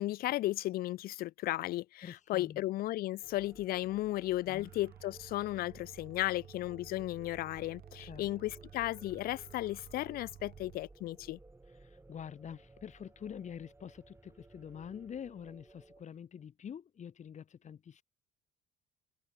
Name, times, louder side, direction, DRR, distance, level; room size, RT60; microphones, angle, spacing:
voice 1, 0.0-2.0 2.3-11.4, left 16 dB, 60° left, 0.4 m, -35 dB
voice 2, 2.0-2.6 4.5-4.7 8.0-8.3 11.7-18.0, left 8 dB, 45° left, 4.0 m, -46 dB
sound 1, 3.2-16.0, right 2 dB, 15° right, 5.1 m, -58 dB
sound 2, 4.6-10.8, right 12 dB, 65° right, 3.1 m, -54 dB
cardioid pair, 110°, 17 cm